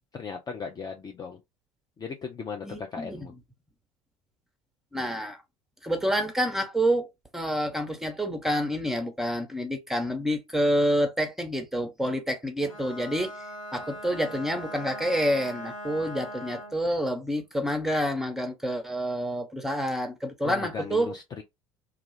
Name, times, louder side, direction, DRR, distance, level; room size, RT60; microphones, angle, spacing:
voice 1, 0.1-1.4 2.0-3.3 20.4-21.4, left 5 dB, 25° left, 0.4 m, -37 dB
voice 2, 2.6-3.3 4.9-5.4 5.8-7.1 7.3-13.3 13.7-21.2, equal, ahead, 0.8 m, -28 dB
Bowed string instrument, 12.6-16.9, equal, 85° left, 1.0 m, -40 dB
2.3 x 2.3 x 3.2 m
figure-of-eight pair, 65°, 17 cm